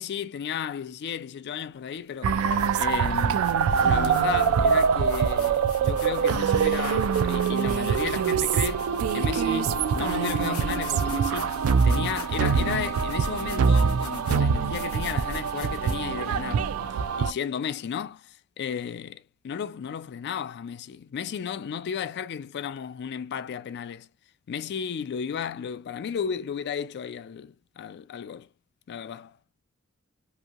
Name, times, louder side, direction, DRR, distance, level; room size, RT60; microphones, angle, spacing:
voice 1, 0.0-2.4 2.8-3.5 3.8-8.9 9.1-11.5 11.8-16.7 17.2-24.1 24.5-28.5 28.9-29.4, left 7 dB, 50° left, 0.3 m, -34 dB
sound 1, 1.6-1.8 2.3-16.4, left 6 dB, 80° left, 0.9 m, -44 dB
sound 2, 2.2-17.3, right 6 dB, 75° right, 0.3 m, -24 dB
2.9 x 2.6 x 2.3 m
head